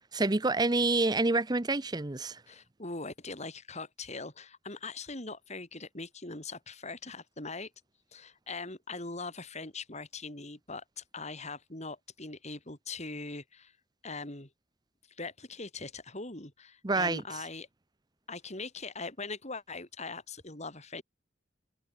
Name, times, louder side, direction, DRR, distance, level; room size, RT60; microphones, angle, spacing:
voice 1, 0.1-2.4 16.8-17.2, right 3 dB, 20° right, 0.8 m, -27 dB
voice 2, 2.5-7.7 8.1-13.7 14.0-14.5 15.2-17.7 18.3-21.0, left 3 dB, 35° left, 5.2 m, -41 dB
head